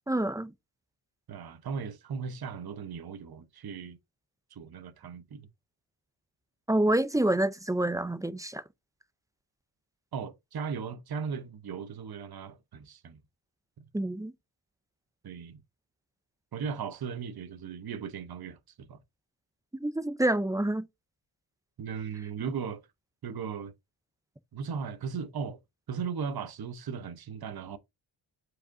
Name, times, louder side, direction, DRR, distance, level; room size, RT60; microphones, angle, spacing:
voice 1, 0.1-0.5 6.7-8.6 13.9-14.3 19.8-20.9, right 1 dB, 5° right, 0.4 m, -27 dB
voice 2, 1.3-4.0 4.5-5.5 10.1-13.2 15.2-15.6 16.5-19.0 21.8-22.8 23.2-23.7 24.5-25.6 25.9-27.8, right 6 dB, 50° right, 0.9 m, -37 dB
7.3 x 4.9 x 2.6 m
wide cardioid pair, 125°, 48 cm